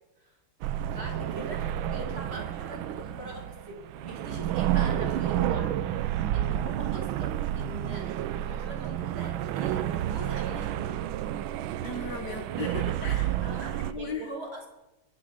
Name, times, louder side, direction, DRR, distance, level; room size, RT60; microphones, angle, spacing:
sound 1, 0.6-13.9, right 11 dB, 75° right, 1.4 m, -30 dB
voice 1, 0.9-5.8 6.3-8.1 8.5-11.0 13.4-14.7, right 1 dB, 30° right, 1 dB, 2.3 m, -42 dB
voice 2, 11.8-13.4 13.7-14.3, left 5 dB, 55° left, 6 dB, 1.6 m, -37 dB
23.0 x 8.5 x 5.2 m, 1.1 s
omnidirectional pair, 2.3 m